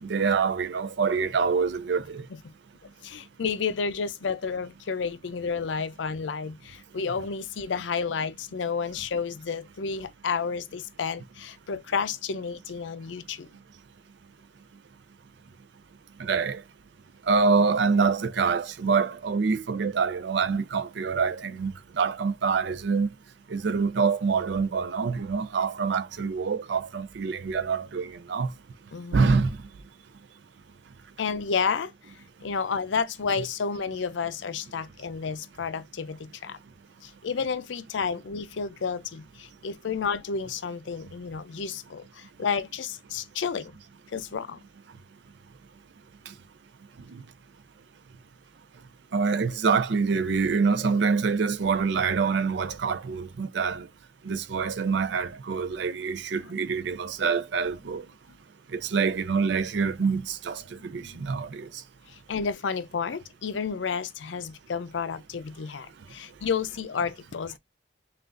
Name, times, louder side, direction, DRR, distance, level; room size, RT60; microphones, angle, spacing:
voice 1, 0.0-2.3 16.2-16.6 17.3-23.1 23.5-28.5 29.1-29.6 46.3-46.4 47.1-47.2 49.1-53.9 54.2-58.0 58.7-61.7, right 5 dB, 65° right, 0.4 m, -26 dB
voice 2, 3.0-13.5 28.9-29.3 31.2-31.9 32.4-36.6 37.0-43.8 44.1-44.6 61.0-61.2 62.1-67.6, left 5 dB, 75° left, 0.5 m, -31 dB
5.7 x 2.4 x 2.5 m
head